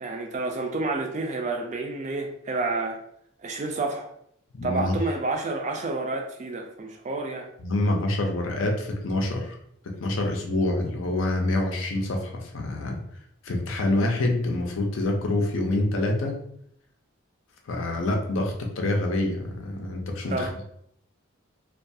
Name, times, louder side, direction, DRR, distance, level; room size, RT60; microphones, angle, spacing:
voice 1, 0.0-3.0 3.4-4.1 4.6-7.5 20.3-20.6, right 3 dB, 35° right, 3 dB, 0.3 m, -29 dB
voice 2, 4.5-4.9 7.6-9.6 10.0-13.0 13.4-16.4 17.7-20.5, left 2 dB, 70° left, 2 dB, 0.5 m, -26 dB
2.3 x 2.2 x 2.6 m, 0.70 s
head